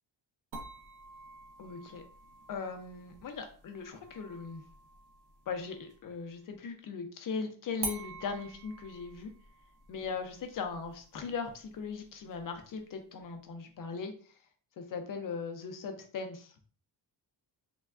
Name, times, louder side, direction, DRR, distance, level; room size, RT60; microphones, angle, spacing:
sound 1, 0.5-6.1 7.8-12.8, right 3 dB, 45° right, 0.5 m, -47 dB
voice 1, 1.6-2.0 2.5-4.6 5.5-9.3 9.9-14.1 14.8-16.5, left 5 dB, 45° left, 5 dB, 0.4 m, -39 dB
3.3 x 2.2 x 2.3 m, 0.42 s
wide cardioid pair, 175°, 46 cm